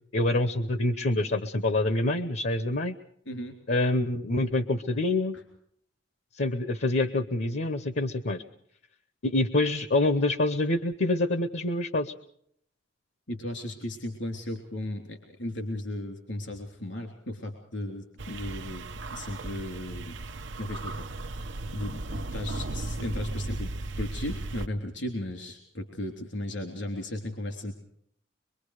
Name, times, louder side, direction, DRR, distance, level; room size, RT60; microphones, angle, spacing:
voice 1, 0.1-3.0 3.7-5.4 6.4-8.4 9.2-12.1, left 2 dB, 65° left, 10 dB, 0.9 m, -26 dB
voice 2, 3.2-3.6 5.3-5.4 13.3-18.8 19.1-20.1 20.6-21.4 21.7-23.7 24.0-27.7, left 1 dB, 85° left, 3 dB, 3.3 m, -36 dB
sound 1, 18.2-24.7, right 2 dB, 80° right, 0.8 m, -36 dB
24.0 x 23.5 x 5.0 m, 0.67 s
head